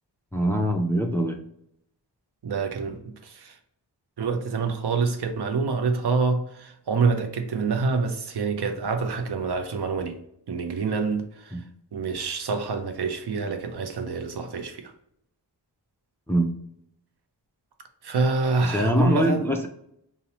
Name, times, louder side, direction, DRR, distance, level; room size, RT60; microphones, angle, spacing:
voice 1, 0.3-1.4 11.5-11.6 16.3-16.5 18.6-19.7, right 1 dB, 5° left, 0.4 m, -23 dB
voice 2, 2.4-3.6 4.2-10.2 10.5-11.6 11.9-14.9 18.0-19.4, right 4 dB, 65° right, 0.5 m, -26 dB
2.7 x 2.0 x 2.9 m
cardioid pair, 40°, 43 cm